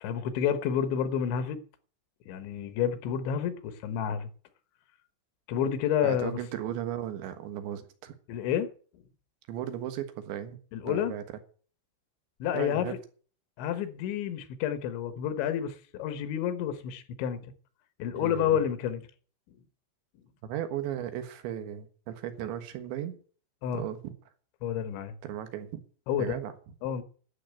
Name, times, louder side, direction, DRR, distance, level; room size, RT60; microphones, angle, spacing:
voice 1, 0.0-1.6 2.3-4.3 5.5-6.4 8.3-8.7 10.7-11.1 12.4-13.0 13.6-17.5 18.0-19.0 23.6-23.8 24.6-25.2 26.1-26.4 26.8-27.0, left 9 dB, 85° left, 3.7 m, -29 dB
voice 2, 6.0-8.2 9.5-10.6 10.8-11.2 12.5-13.0 18.2-18.6 20.4-23.2 23.7-24.1 25.2-25.8 26.2-26.5, right 10 dB, 80° right, 3.7 m, -36 dB
11.5 x 7.9 x 8.8 m
omnidirectional pair, 5.2 m